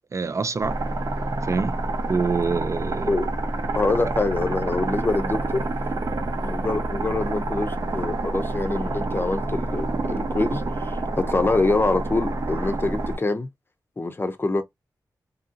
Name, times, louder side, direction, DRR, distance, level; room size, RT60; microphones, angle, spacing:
voice 1, 0.1-0.8 1.4-1.8 2.1-3.2, right 4 dB, 45° right, 0.3 m, -25 dB
sound 1, 0.6-13.2, right 2 dB, 65° right, 0.8 m, -28 dB
voice 2, 3.7-5.7 6.4-13.5 14.0-14.6, left 3 dB, 30° left, 0.5 m, -25 dB
2.8 x 2.7 x 2.5 m
wide cardioid pair, 80°, 7 cm